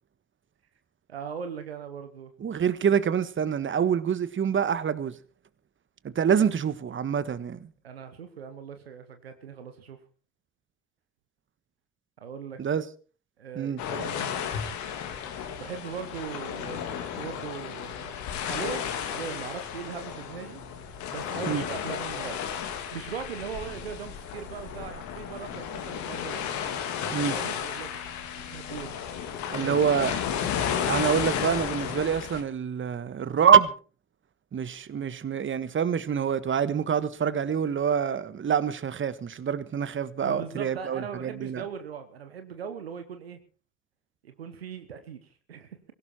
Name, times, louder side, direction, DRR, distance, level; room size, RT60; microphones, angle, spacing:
voice 1, 1.1-2.3 7.8-10.0 12.2-12.6 13.4-14.3 15.6-20.6 21.1-22.4 22.7-26.4 27.0-28.0 28.4-29.0 29.5-29.8 40.2-43.4 44.2-45.7, right 7 dB, 90° right, 1.2 m, -39 dB
voice 2, 2.4-5.1 6.1-7.7 12.6-12.8 13.6-13.8 21.5-21.6 27.1-27.3 29.5-30.1 30.8-33.7 34.5-41.6, right 7 dB, 40° right, 1.5 m, -26 dB
sound 1, 13.8-32.4, left 8 dB, 70° left, 2.4 m, -33 dB
17.0 x 17.0 x 4.3 m
hypercardioid pair, 45°, 30 cm